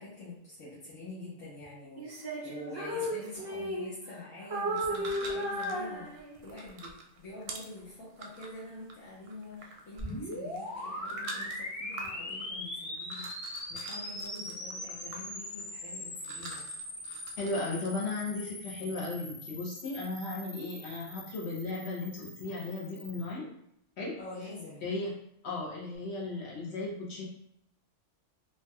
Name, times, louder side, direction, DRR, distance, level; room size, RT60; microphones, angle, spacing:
voice 1, 0.0-2.1 2.4-6.1 6.4-13.3 13.7-16.6 24.2-24.9, left 2 dB, 90° left, -9 dB, 1.2 m, -46 dB
Female singing, 2.0-4.2 4.5-6.6, equal, 40° right, 0.3 m, -34 dB
sound 1, 4.7-17.9, right 3 dB, 65° right, 0.7 m, -48 dB
sound 2, 10.0-23.3, left 1 dB, 20° left, 0.7 m, -41 dB
voice 2, 17.4-23.5 24.0-24.2 24.8-25.1 25.4-27.2, left 3 dB, 65° left, -4 dB, 1.0 m, -36 dB
3.4 x 2.6 x 2.2 m, 0.74 s
omnidirectional pair, 1.2 m